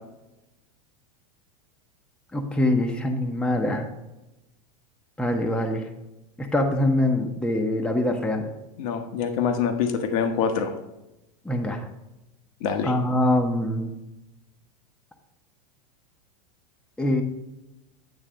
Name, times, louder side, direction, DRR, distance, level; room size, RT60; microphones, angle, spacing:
voice 1, 2.3-3.9 5.2-5.8 6.4-8.5 11.4-11.8 12.8-13.9 17.0-17.2, left 1 dB, 5° left, 3 dB, 0.8 m, -24 dB
voice 2, 8.8-10.7 12.6-12.9, left 6 dB, 60° left, 5 dB, 1.1 m, -25 dB
9.2 x 3.2 x 6.1 m, 0.94 s
hypercardioid pair, 120°, 20 cm